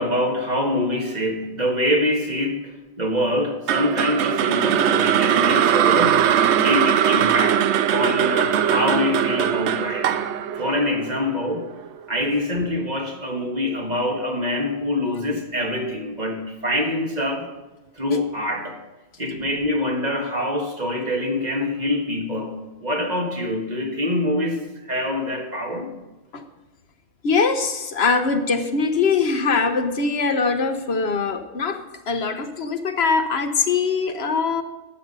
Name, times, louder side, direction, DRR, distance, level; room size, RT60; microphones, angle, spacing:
voice 1, 0.0-6.3 6.5-7.6 7.9-10.1 10.6-11.7 12.1-17.5 18.0-18.8 19.2-22.6 22.8-24.6 24.9-25.9, left 1 dB, 40° right, 1 dB, 1.7 m, -25 dB
sound 1, 3.7-11.9, right 9 dB, 80° right, 0.9 m, -20 dB
voice 2, 27.2-31.8 32.1-34.6, left 4 dB, 70° left, 7 dB, 1.1 m, -22 dB
12.0 x 8.2 x 5.4 m, 1.1 s
omnidirectional pair, 1.1 m